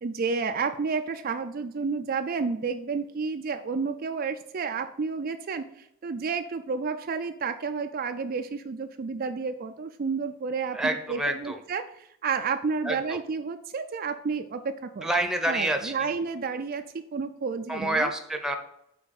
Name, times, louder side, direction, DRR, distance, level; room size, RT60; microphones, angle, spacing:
voice 1, 0.0-15.1 15.5-16.8 17.1-18.1, right 5 dB, 45° right, 7 dB, 0.4 m, -31 dB
voice 2, 10.7-11.6 12.8-13.2 15.0-16.1 17.7-18.6, right 1 dB, 5° right, 5 dB, 0.8 m, -28 dB
6.3 x 4.5 x 6.4 m, 0.79 s
head